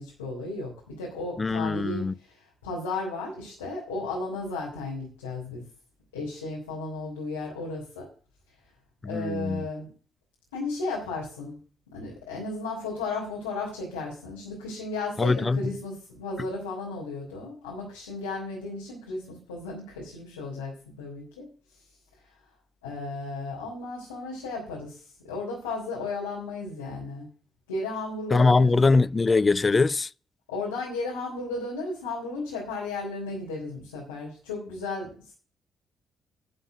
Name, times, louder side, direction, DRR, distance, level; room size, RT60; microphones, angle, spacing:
voice 1, 0.0-5.6 6.1-8.0 9.0-9.9 10.5-11.6 11.9-21.5 22.8-27.3 27.7-28.8 30.5-35.3, left 3 dB, 85° left, 3.4 m, -34 dB
voice 2, 1.4-2.1 9.0-9.6 15.2-15.6 28.3-30.1, left 3 dB, 30° left, 0.4 m, -22 dB
11.5 x 5.3 x 7.9 m
hypercardioid pair, 45°, 0 cm